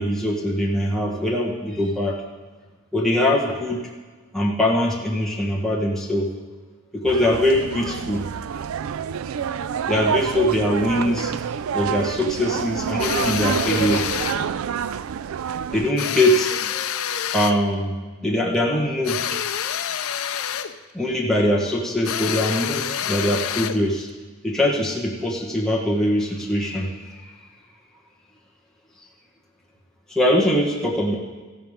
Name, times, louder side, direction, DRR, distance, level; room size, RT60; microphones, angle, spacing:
voice 1, 0.0-2.2 2.9-3.8 4.3-6.3 6.9-8.3 9.9-11.3 11.7-14.1 15.7-16.7 17.3-19.4 20.9-24.1 24.4-27.2 30.1-31.2, left 1 dB, ahead, -4 dB, 1.1 m, -22 dB
sound 1, 7.1-15.9, right 8 dB, 70° right, 0.3 m, -27 dB
sound 2, 13.0-14.5 16.0-17.6 19.0-20.8 22.0-23.9, left 9 dB, 75° left, 0.5 m, -27 dB
14.5 x 11.5 x 3.6 m, 1.4 s
head